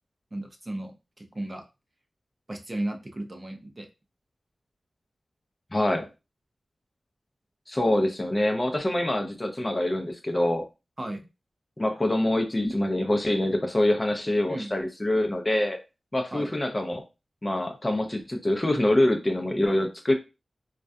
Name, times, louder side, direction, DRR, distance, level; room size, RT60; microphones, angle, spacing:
voice 1, 0.3-1.6 2.5-3.9 11.0-11.3 14.5-14.7 16.3-16.5, right 1 dB, 30° right, 4 dB, 0.5 m, -35 dB
voice 2, 5.7-6.1 7.7-10.7 11.8-15.8 16.1-17.0 17.4-20.1, left 1 dB, 25° left, 5 dB, 0.5 m, -25 dB
2.2 x 2.1 x 2.5 m, 0.27 s
cardioid pair, 55°, 0 cm